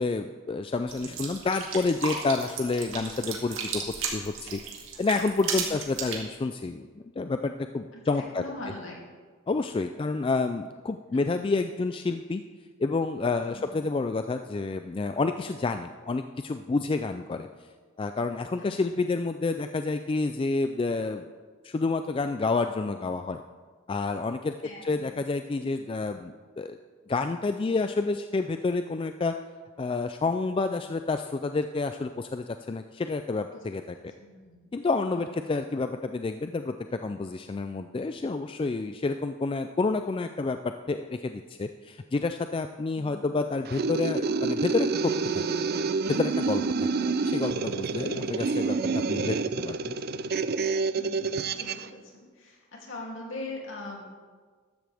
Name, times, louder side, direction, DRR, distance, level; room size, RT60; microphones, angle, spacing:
voice 1, 0.0-4.6 5.0-6.9 7.2-8.4 9.5-12.4 12.8-17.5 18.0-21.3 21.6-23.4 23.9-24.5 24.8-26.8 27.1-29.3 29.8-34.0 34.7-45.4 46.1-46.6 47.0-48.8 49.1-50.0, left 3 dB, 25° left, 8 dB, 0.3 m, -29 dB
sound 1, 0.9-6.2, right 5 dB, 70° right, 2.1 m, -34 dB
voice 2, 8.1-9.0 13.5-13.8 18.6-18.7 24.6-25.1 33.5-33.6 34.2-34.6 35.1-35.3 42.9-43.3 46.8-47.1 48.1-48.3 50.9-54.1, left 2 dB, 65° left, -2 dB, 2.8 m, -42 dB
sound 2, 43.7-51.9, right 4 dB, 50° right, 0.4 m, -28 dB
13.5 x 12.5 x 3.5 m, 1.5 s
head